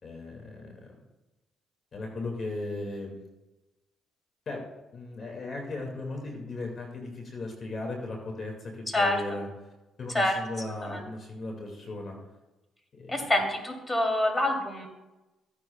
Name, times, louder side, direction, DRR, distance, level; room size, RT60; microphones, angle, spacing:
voice 1, 0.0-1.0 1.9-3.2 4.5-4.6 4.9-9.5 10.0-12.2 12.9-13.3, left 2 dB, 45° left, 1 dB, 2.2 m, -37 dB
voice 2, 8.9-9.2 10.1-10.4 10.8-11.0 13.1-14.9, left 1 dB, 15° left, 2 dB, 3.0 m, -26 dB
15.0 x 10.5 x 2.3 m, 1.0 s
supercardioid pair, 70°, 0 cm